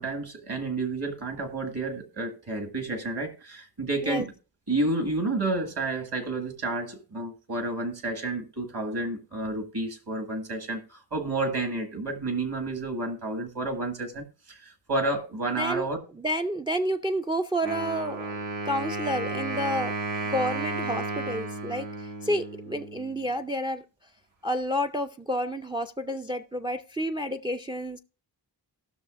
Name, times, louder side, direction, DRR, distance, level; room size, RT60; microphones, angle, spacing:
voice 1, 0.0-4.3 4.7-16.0, right 2 dB, 60° right, 1.9 m, -30 dB
voice 2, 16.2-18.3 18.7-19.9 20.3-23.8 24.4-28.0, equal, 10° right, 0.4 m, -30 dB
Wind instrument woodwind instrument, 17.6-23.3, right 3 dB, 90° right, 2.4 m, -33 dB
18.0 x 6.2 x 2.5 m
wide cardioid pair, 80°, 44 cm